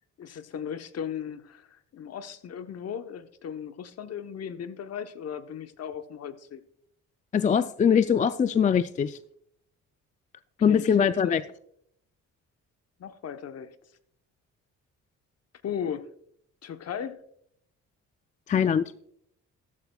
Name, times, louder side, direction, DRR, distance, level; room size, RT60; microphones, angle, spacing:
voice 1, 0.2-6.6 10.7-11.4 13.0-13.7 15.6-16.1 16.6-17.2, left 8 dB, 55° left, 10 dB, 0.9 m, -37 dB
voice 2, 7.3-9.2 10.6-11.4 18.5-18.9, left 7 dB, 25° left, 14 dB, 0.3 m, -22 dB
14.0 x 12.0 x 2.3 m, 0.70 s
cardioid pair, 90°, 30 cm